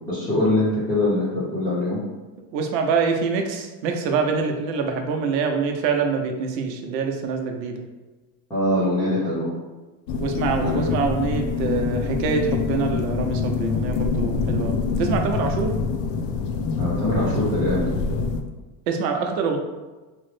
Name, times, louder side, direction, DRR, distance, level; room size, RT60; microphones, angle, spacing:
voice 1, 0.1-2.0 8.5-9.5 10.6-10.8 16.8-17.9, left 1 dB, 5° left, -11 dB, 0.6 m, -23 dB
voice 2, 2.5-7.8 10.2-15.7 18.9-19.6, right 5 dB, 90° right, 3 dB, 0.7 m, -25 dB
sound 1, 10.1-18.4, left 5 dB, 80° left, 0.5 m, -25 dB
3.0 x 2.0 x 3.1 m, 1.2 s
supercardioid pair, 135°, 49 cm